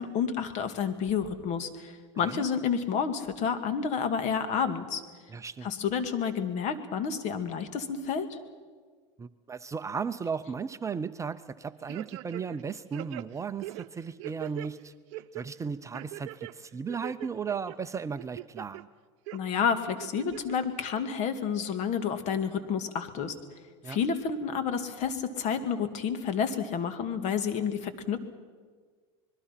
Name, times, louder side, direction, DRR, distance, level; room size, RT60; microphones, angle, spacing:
voice 1, 0.0-5.0 5.6-8.4 19.3-23.4 23.9-28.2, left 6 dB, 50° left, 9 dB, 2.2 m, -30 dB
voice 2, 5.3-5.7 9.2-14.9 15.3-18.9 23.8-24.0, right 6 dB, 20° right, 11 dB, 0.6 m, -35 dB
sound 1, 11.9-12.6 12.9-14.7 15.1-15.5 15.9-16.5 16.9-17.8 18.2-18.8 19.3-19.4 20.0-20.6 21.0-21.1, right 17 dB, 70° right, 0.8 m, -41 dB
25.5 x 21.5 x 5.9 m, 1.6 s
supercardioid pair, 105°, 16 cm